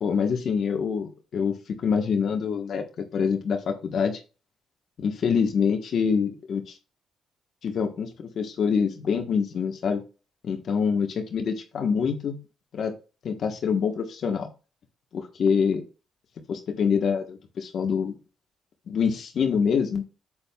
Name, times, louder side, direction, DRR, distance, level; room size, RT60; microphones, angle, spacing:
voice 1, 0.0-4.2 5.0-6.8 7.6-10.0 10.4-12.4 12.7-12.9 13.2-14.5 15.1-15.8 16.5-18.1 18.9-20.0, left 6 dB, 60° left, 4 dB, 1.3 m, -25 dB
8.6 x 7.5 x 2.4 m, 0.32 s
cardioid pair, 90°, 0 cm